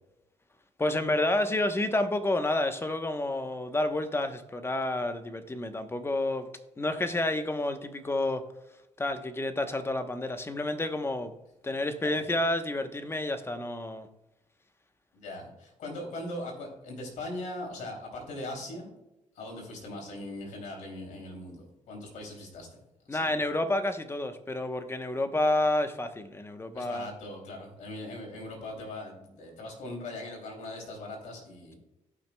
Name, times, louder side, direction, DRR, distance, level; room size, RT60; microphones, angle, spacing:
voice 1, 0.8-6.5 6.8-8.4 9.0-11.3 11.6-14.1 23.1-27.1, left 1 dB, 20° left, 8 dB, 1.0 m, -29 dB
voice 2, 15.1-18.9 19.3-22.7 23.1-23.3 26.7-31.8, left 1 dB, 75° left, 1 dB, 3.0 m, -40 dB
17.0 x 5.9 x 2.3 m, 0.95 s
cardioid pair, 75°, 13 cm